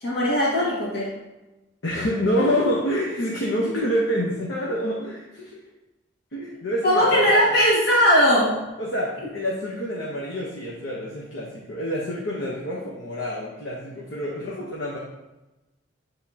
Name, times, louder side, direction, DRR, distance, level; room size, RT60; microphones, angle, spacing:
voice 1, 0.0-1.1 6.8-8.6, equal, 55° left, -6 dB, 1.7 m, -19 dB
voice 2, 1.8-5.6 6.3-7.4 8.8-15.0, equal, 85° left, -4 dB, 1.0 m, -27 dB
9.2 x 3.6 x 2.9 m, 1.0 s
head